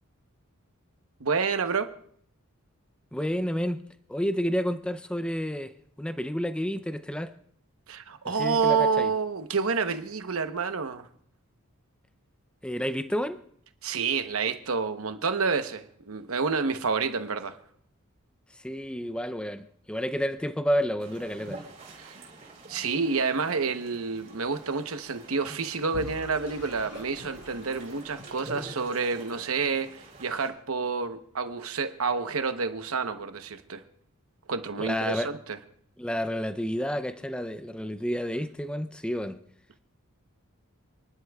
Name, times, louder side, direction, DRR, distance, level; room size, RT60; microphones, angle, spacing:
voice 1, 1.2-1.9 7.9-11.1 13.8-17.6 22.0-22.2 22.7-33.8 34.5-35.6, right 5 dB, 75° right, 0.9 m, -29 dB
voice 2, 3.1-3.8 4.1-5.7 6.0-7.4 8.4-9.1 12.6-13.4 18.6-21.6 34.8-35.3 36.0-39.4, equal, 5° left, 0.5 m, -30 dB
sound 1, 21.0-30.5, right 2 dB, 40° right, 3.8 m, -46 dB
Vehicle / Engine, 25.9-28.9, left 4 dB, 85° left, 0.6 m, -46 dB
29.0 x 11.5 x 2.3 m
head